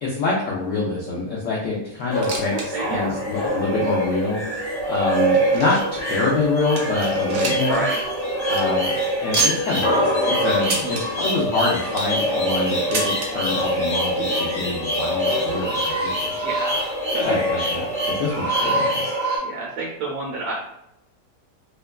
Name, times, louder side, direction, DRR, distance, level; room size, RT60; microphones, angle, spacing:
voice 1, 0.0-7.8 8.5-8.9 9.2-16.4 17.2-17.9 18.2-19.1, left 3 dB, 80° left, -4 dB, 0.7 m, -26 dB
sound 1, 2.0-2.7 3.0-3.1 3.7-3.8 4.5-6.0 6.4-6.5 6.8-7.8 8.1-8.2 8.4-8.6 9.3-9.8 10.6-11.0 11.7-12.2 12.9-13.3 14.3-14.4 14.6-14.7 15.5-15.6, right 4 dB, 85° right, 0.6 m, -27 dB
sound 2, 2.1-18.4, left 1 dB, 40° left, 0.9 m, -32 dB
sound 3, 2.4-19.4, right 1 dB, 5° left, 0.5 m, -24 dB
voice 2, 2.5-3.2 7.6-8.0 10.6-11.0 16.4-17.3 17.6-17.7 19.4-20.5, right 2 dB, 70° right, -3 dB, 1.0 m, -30 dB
2.9 x 2.2 x 2.2 m, 0.81 s
omnidirectional pair, 1.9 m